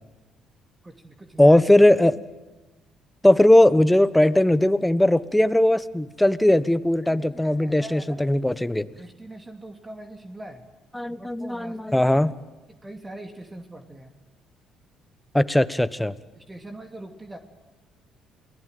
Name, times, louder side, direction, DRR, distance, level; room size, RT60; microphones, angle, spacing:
voice 1, 0.8-1.6 7.0-8.2 9.0-10.6 11.1-12.1 12.7-14.1 16.3-17.4, right 1 dB, 20° right, 5 dB, 2.8 m, -41 dB
voice 2, 1.4-2.2 3.2-8.9 10.9-12.3 15.3-16.1, left 1 dB, 5° left, 15 dB, 1.2 m, -19 dB
28.5 x 19.5 x 9.3 m, 1.1 s
hypercardioid pair, 60°, 0 cm